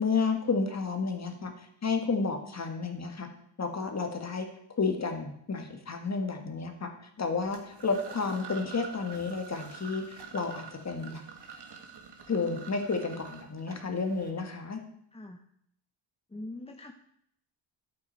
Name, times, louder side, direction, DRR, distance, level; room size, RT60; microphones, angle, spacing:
voice 1, 0.0-1.5 1.8-3.3 3.6-4.5 4.8-6.9 7.2-11.2 12.3-14.8, left 4 dB, 35° left, 5 dB, 1.7 m, -31 dB
sound 1, 7.5-14.3, right 6 dB, 55° right, 1.9 m, -47 dB
voice 2, 15.1-15.4 16.3-16.9, left 2 dB, 10° left, 4 dB, 0.6 m, -43 dB
12.5 x 8.6 x 4.5 m, 0.72 s
wide cardioid pair, 150°, 49 cm